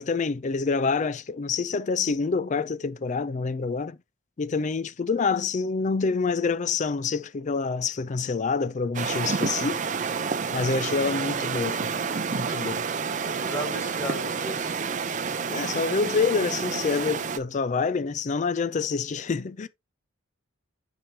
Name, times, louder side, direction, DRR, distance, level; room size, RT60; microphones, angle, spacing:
voice 1, 0.0-4.0 4.4-9.8 10.5-11.9 12.3-12.8 15.5-19.7, left 4 dB, 35° left, 0.4 m, -27 dB
sound 1, 8.9-17.4, right 5 dB, 35° right, 0.5 m, -29 dB
voice 2, 13.2-14.8, right 1 dB, 15° left, 4.6 m, -34 dB
9.1 x 4.9 x 2.8 m
head